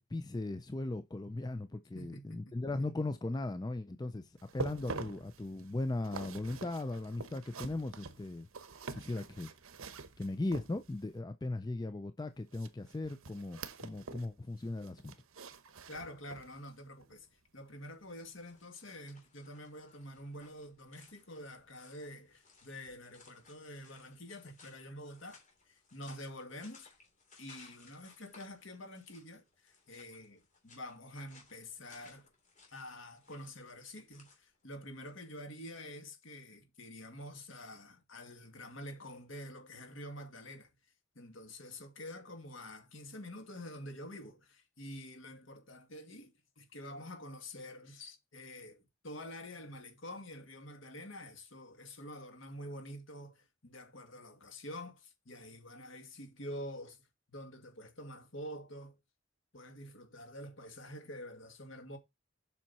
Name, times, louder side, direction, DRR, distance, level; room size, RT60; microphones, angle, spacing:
voice 1, 0.1-8.5 8.9-9.5 10.2-15.1, left 2 dB, 20° left, 0.4 m, -38 dB
voice 2, 1.9-2.6 15.9-17.3 17.5-25.4 25.7-26.9 27.4-32.3 32.7-40.7 41.2-57.0 57.3-59.0 59.5-62.0, left 1 dB, 60° left, 2.0 m, -47 dB
sound 1, 4.4-11.1 12.5-14.3 14.6-16.6 17.0-17.2 17.7-17.8, right 4 dB, 75° right, 0.9 m, -46 dB
sound 2, 17.8-35.4, left 4 dB, 35° left, 3.1 m, -62 dB
7.4 x 5.7 x 4.1 m
head